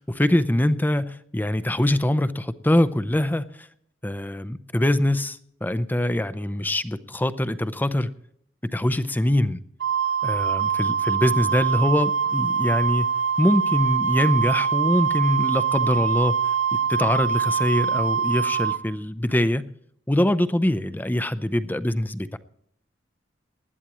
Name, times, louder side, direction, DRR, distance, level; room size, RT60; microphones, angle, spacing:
voice 1, 0.0-3.5 4.0-8.1 8.7-9.6 10.2-13.1 13.4-16.3 16.7-19.7 20.1-22.4, left 1 dB, 10° left, 13 dB, 0.6 m, -23 dB
Wind instrument woodwind instrument, 9.8-18.8, right 7 dB, 75° right, 1.2 m, -24 dB
20.0 x 12.5 x 3.0 m, 0.68 s
head